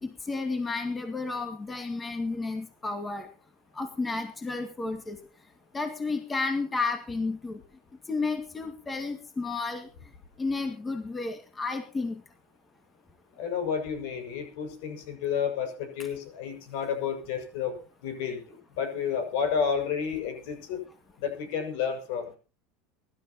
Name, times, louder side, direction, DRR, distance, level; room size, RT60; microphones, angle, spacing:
voice 1, 0.0-3.3 3.7-5.2 5.7-7.6 8.1-9.9 10.4-12.2, left 3 dB, 15° left, 6 dB, 2.1 m, -32 dB
voice 2, 13.4-17.7 18.0-20.8 21.2-22.3, left 7 dB, 70° left, 7 dB, 6.5 m, -31 dB
23.5 x 12.5 x 3.0 m, 0.35 s
supercardioid pair, 140°, 0 cm